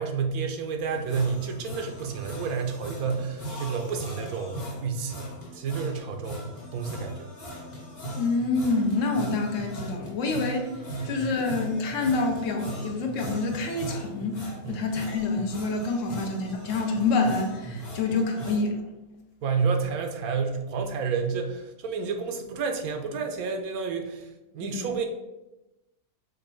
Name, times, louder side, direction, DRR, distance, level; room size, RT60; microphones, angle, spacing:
voice 1, 0.0-5.3 5.5-6.5 6.7-7.3 9.2-9.3 11.0-11.2 14.6-14.8 16.2-16.3 17.7-18.0 19.4-25.1, right 5 dB, 80° right, 5 dB, 1.1 m, -30 dB
sound 1, 0.9-18.6, equal, 45° left, 1.3 m, -38 dB
voice 2, 8.2-10.7 11.0-18.8 24.6-24.9, left 3 dB, 65° left, 2 dB, 1.1 m, -27 dB
5.0 x 2.2 x 4.6 m, 0.99 s
omnidirectional pair, 1.5 m